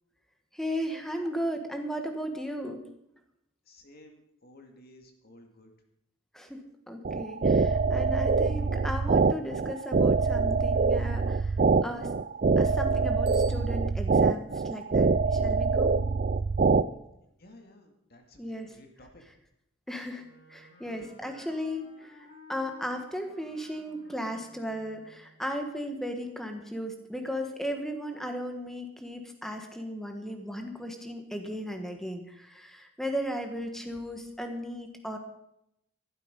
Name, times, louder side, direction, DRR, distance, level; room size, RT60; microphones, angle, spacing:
voice 1, 0.5-2.8 6.3-11.5 11.8-12.1 12.6-15.9 18.4-18.7 19.9-35.2, equal, ahead, 5 dB, 1.4 m, -36 dB
voice 2, 3.7-5.7 17.4-19.2 20.8-21.4 33.9-34.0, left 1 dB, 45° left, 3 dB, 2.1 m, -54 dB
sound 1, 7.0-16.8, right 4 dB, 40° right, 0.4 m, -24 dB
Bicycle bell, 13.2-14.5, right 8 dB, 55° right, 4.0 m, -51 dB
Wind instrument woodwind instrument, 20.2-25.5, left 1 dB, 70° left, 5.6 m, -55 dB
14.0 x 12.0 x 5.2 m, 0.80 s
head